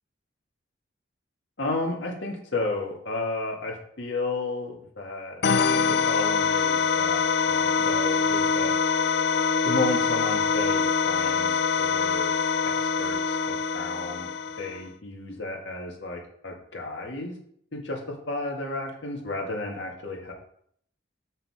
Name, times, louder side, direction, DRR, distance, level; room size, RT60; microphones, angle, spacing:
voice 1, 1.6-5.4 6.0-8.7 9.6-12.3 13.0-14.3 14.6-17.4 17.7-18.0 18.3-20.3, left 2 dB, 75° left, 0 dB, 2.1 m, -32 dB
sound 1, 5.4-14.9, left 5 dB, 60° left, 0.4 m, -24 dB
6.8 x 6.2 x 4.9 m, 0.65 s
head